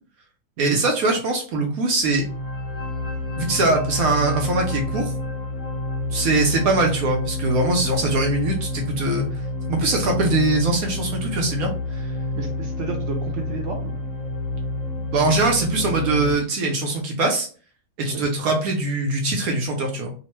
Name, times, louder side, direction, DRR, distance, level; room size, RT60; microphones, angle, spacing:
voice 1, 0.6-2.2 3.4-5.1 6.1-9.2 9.7-12.1 15.1-17.5 18.0-20.1, right 2 dB, 70° right, 1 dB, 0.9 m, -22 dB
sound 1, 2.0-16.3, left 2 dB, 60° left, 1.1 m, -29 dB
voice 2, 12.3-14.0 18.1-18.2, right 5 dB, 90° right, 1 dB, 0.6 m, -32 dB
2.9 x 2.1 x 3.0 m, 0.41 s
omnidirectional pair, 1.8 m